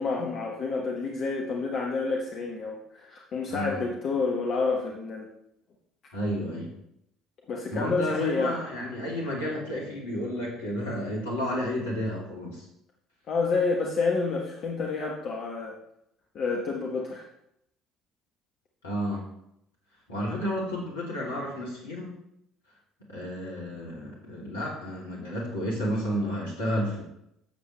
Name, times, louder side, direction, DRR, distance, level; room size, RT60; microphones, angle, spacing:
voice 1, 0.0-5.3 7.5-8.6 13.3-15.8 16.3-17.3, left 4 dB, 45° left, 0 dB, 1.5 m, -29 dB
voice 2, 3.5-3.8 6.1-6.7 7.7-12.6 18.8-19.2 20.1-22.1 23.1-27.0, equal, 75° left, -3 dB, 3.1 m, -31 dB
12.5 x 7.8 x 3.4 m, 0.77 s
figure-of-eight pair, 55°, 0 cm